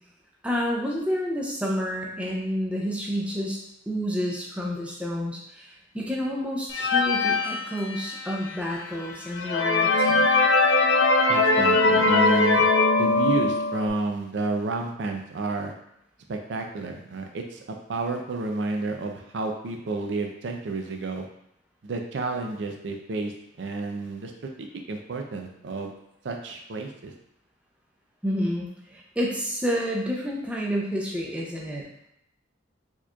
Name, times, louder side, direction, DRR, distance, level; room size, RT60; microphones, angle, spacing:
voice 1, 0.4-3.6 3.9-10.3 28.2-31.8, equal, 5° right, -2 dB, 0.5 m, -29 dB
sound 1, 6.7-8.3 8.9-9.0 9.4-13.9, left 3 dB, 65° left, 0.4 m, -21 dB
voice 2, 11.3-12.7 13.0-15.7 16.3-21.3 21.8-23.3 23.6-25.9 26.2-27.1, right 3 dB, 70° right, 3 dB, 0.4 m, -30 dB
4.4 x 3.0 x 2.3 m, 0.77 s
head